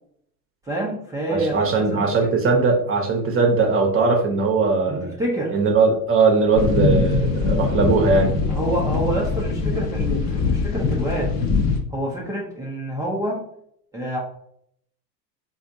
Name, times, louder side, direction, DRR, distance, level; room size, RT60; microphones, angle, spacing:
voice 1, 0.7-2.1 4.9-5.5 8.5-11.3 11.9-13.5 13.9-14.2, right 1 dB, 10° right, -5 dB, 0.3 m, -27 dB
voice 2, 1.3-5.2 5.5-8.4, right 4 dB, 25° right, 1 dB, 0.7 m, -19 dB
sound 1, 6.6-11.8, left 4 dB, 35° left, 0.6 m, -22 dB
4.2 x 2.4 x 2.5 m, 0.70 s
hypercardioid pair, 85°, 50 cm